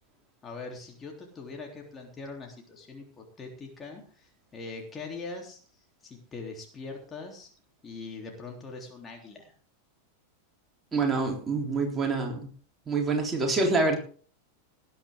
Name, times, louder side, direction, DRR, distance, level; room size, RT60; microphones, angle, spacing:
voice 1, 0.4-5.6 6.0-7.5 7.8-9.5, left 3 dB, 20° left, 1 dB, 3.4 m, -42 dB
voice 2, 10.9-12.5 12.9-14.0, right 3 dB, 15° right, 1 dB, 3.7 m, -26 dB
19.0 x 10.5 x 3.7 m, 0.42 s
figure-of-eight pair, 90°, 0 cm